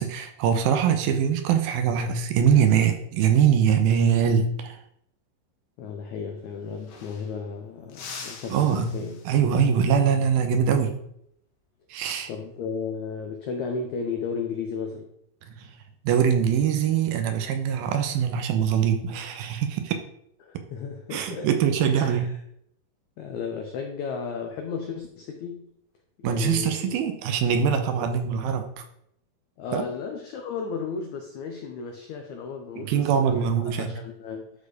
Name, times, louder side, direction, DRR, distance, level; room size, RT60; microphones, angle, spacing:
voice 1, 0.0-4.8 8.5-9.0 9.3-11.0 11.9-12.3 15.5-15.7 16.0-20.0 21.1-22.3 26.2-28.8 29.7-29.8 32.8-33.9, right 7 dB, 80° right, 7 dB, 2.6 m, -23 dB
voice 2, 5.8-9.2 12.3-15.1 20.4-21.5 21.9-22.2 23.2-25.7 26.2-27.0 29.6-33.5 33.8-34.5, left 5 dB, 90° left, 4 dB, 1.6 m, -34 dB
sound 1, 6.3-6.4 6.6-7.5 7.9-9.7 12.2-12.4 13.9-14.3, left 5 dB, 60° left, 1.8 m, -44 dB
12.0 x 4.3 x 4.9 m, 0.73 s
omnidirectional pair, 4.5 m